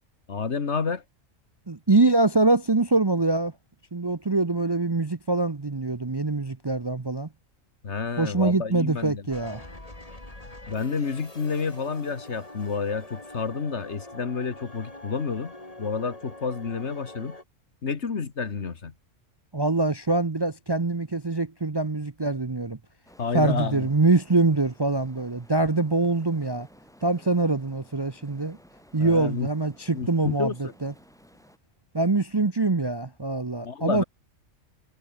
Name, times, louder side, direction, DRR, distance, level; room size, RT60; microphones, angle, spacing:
voice 1, 0.3-1.0 7.8-9.2 10.7-15.5 15.8-17.4 17.8-18.9 23.2-23.9 29.0-29.5 29.9-30.7 33.6-34.0, left 5 dB, 60° left, 1.9 m, -29 dB
voice 2, 1.7-3.5 3.9-7.3 8.2-9.7 19.5-22.8 23.3-26.7 27.0-28.6 28.9-30.9 31.9-34.0, right 3 dB, 25° right, 0.7 m, -24 dB
sound 1, 9.3-17.4, left 1 dB, 30° left, 3.8 m, -44 dB
sound 2, 23.0-31.6, equal, ahead, 4.7 m, -55 dB
omnidirectional pair, 1.3 m